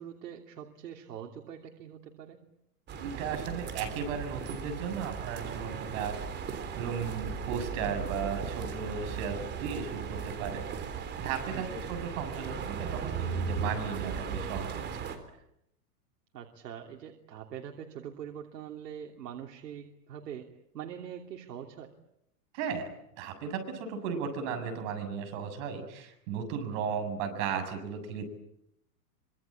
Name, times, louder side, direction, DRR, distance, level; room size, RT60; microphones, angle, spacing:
voice 1, 0.0-2.4 11.5-11.7 16.3-20.5 20.7-21.9, right 9 dB, 90° right, 2 dB, 3.2 m, -43 dB
sound 1, 2.9-15.2, right 6 dB, 20° right, 3.6 m, -37 dB
voice 2, 3.0-6.2 6.7-10.6 10.9-15.1 22.5-22.9 23.2-28.2, right 6 dB, 45° right, 7 dB, 7.2 m, -35 dB
26.0 x 25.5 x 8.8 m, 0.79 s
supercardioid pair, 155°, 47 cm